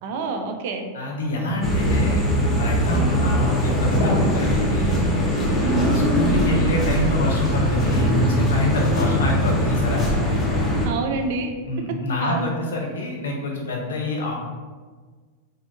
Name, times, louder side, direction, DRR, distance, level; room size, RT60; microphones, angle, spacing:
voice 1, 0.0-0.9 2.9-3.2 5.6-5.9 10.8-11.5 12.2-12.5, right 4 dB, 65° right, 5 dB, 0.3 m, -27 dB
voice 2, 0.9-5.0 5.6-10.0 11.7-14.3, left 1 dB, 85° left, 0 dB, 0.5 m, -26 dB
sound 1, 1.6-10.9, equal, 20° left, 0.6 m, -21 dB
2.7 x 2.1 x 2.6 m, 1.5 s
hypercardioid pair, 105°, 0 cm